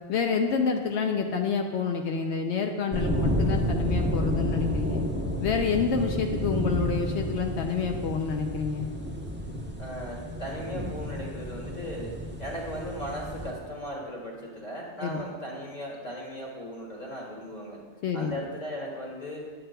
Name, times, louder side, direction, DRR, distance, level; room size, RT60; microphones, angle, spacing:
voice 1, 0.1-5.0 5.4-8.9 15.0-15.3 18.0-18.3, left 5 dB, 75° left, 3 dB, 0.8 m, -28 dB
sound 1, 2.9-13.5, equal, 15° right, 0.5 m, -31 dB
voice 2, 9.8-17.8 18.1-19.5, equal, 40° left, -2 dB, 1.6 m, -37 dB
8.8 x 8.6 x 2.2 m, 1.5 s
omnidirectional pair, 1.2 m